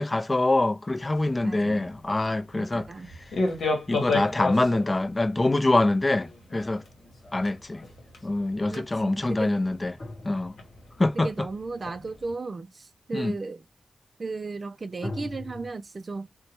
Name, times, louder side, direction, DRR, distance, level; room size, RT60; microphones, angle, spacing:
voice 1, 0.0-2.9 3.9-6.8 7.3-7.8 8.2-10.0 10.2-10.6 11.0-11.3 13.1-13.3, left 2 dB, 30° left, 0.5 m, -25 dB
sound 1, 0.9-12.3, left 3 dB, 80° left, 1.0 m, -35 dB
voice 2, 1.4-1.9 2.5-3.1 8.7-9.6 11.2-13.6 14.2-16.3, right 3 dB, 50° right, 0.4 m, -35 dB
sound 2, 6.1-8.3 10.0-11.1 15.0-15.7, left 2 dB, 50° left, 1.0 m, -42 dB
2.9 x 2.2 x 2.8 m
cardioid pair, 45°, 0 cm